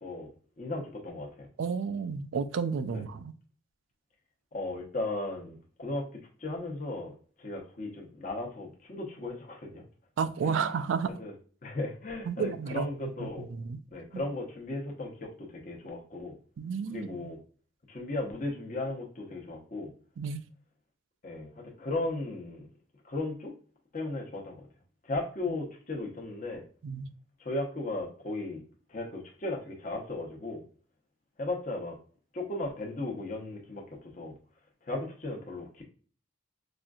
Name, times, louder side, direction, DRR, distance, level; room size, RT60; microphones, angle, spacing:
voice 1, 0.0-1.5 2.9-3.0 4.5-6.1 6.4-7.1 7.4-9.8 10.4-10.7 11.2-11.3 11.6-13.5 13.9-16.4 16.9-17.4 17.9-19.9 21.2-22.7 23.0-23.5 23.9-24.7 25.0-26.6 27.4-28.6 28.9-30.6 31.4-32.0 32.3-34.3 34.9-35.8, left 2 dB, 40° left, 0.9 m, -36 dB
voice 2, 1.6-3.3 10.2-11.1 12.3-12.9 13.2-13.8 14.1-14.2 16.6-17.3 20.2-20.4 26.8-27.1, right 6 dB, 85° right, 0.4 m, -32 dB
4.3 x 2.6 x 2.3 m
head